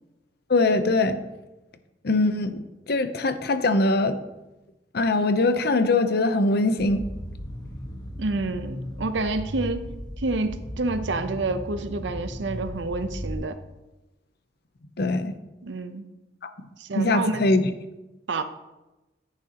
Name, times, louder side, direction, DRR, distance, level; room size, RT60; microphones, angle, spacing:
voice 1, 0.5-1.2 2.0-2.6 2.9-4.2 4.9-7.0 15.0-15.3 16.4-16.5 17.0-17.6, left 2 dB, 60° left, 10 dB, 0.7 m, -22 dB
sound 1, 6.8-13.3, equal, 20° left, 1.2 m, -36 dB
voice 2, 8.2-9.9 10.2-13.6 15.6-16.0 16.8-17.4 18.3-18.4, right 3 dB, 75° right, 10 dB, 0.7 m, -28 dB
10.5 x 9.0 x 2.9 m, 1.0 s
head